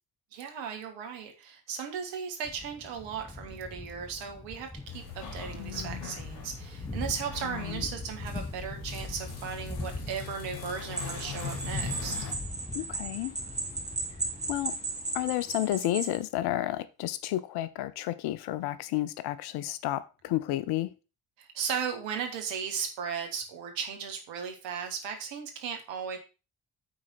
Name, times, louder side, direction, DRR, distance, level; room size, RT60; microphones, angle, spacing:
voice 1, 0.3-12.2 21.4-26.2, right 7 dB, 60° right, 1.6 m, -36 dB
Thunder, 2.4-15.8, left 2 dB, 10° left, 0.7 m, -42 dB
sound 1, 4.9-12.3, left 6 dB, 70° left, 1.5 m, -41 dB
voice 2, 5.6-6.1 7.4-7.8 12.7-13.4 14.5-14.8 15.1-20.9, left 15 dB, 50° left, 0.6 m, -31 dB
sound 2, 11.0-16.2, right 3 dB, 15° right, 2.0 m, -36 dB
8.6 x 3.9 x 4.3 m
figure-of-eight pair, 40°, 49 cm